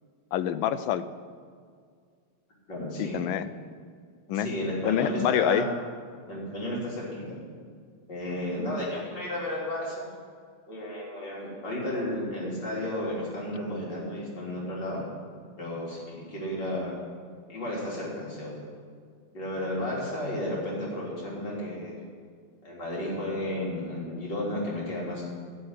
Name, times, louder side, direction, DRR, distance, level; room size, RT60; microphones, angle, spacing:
voice 1, 0.3-1.0 3.0-3.5 4.3-4.5 4.8-5.6, left 10 dB, 75° left, 13 dB, 1.2 m, -26 dB
voice 2, 2.7-3.2 4.3-5.7 6.3-7.4 8.1-10.1 10.7-15.0 15.6-16.9 17.5-18.5 19.3-21.9 22.6-25.2, left 1 dB, 55° left, -5 dB, 4.3 m, -33 dB
12.5 x 6.4 x 9.8 m, 2.1 s
omnidirectional pair, 2.4 m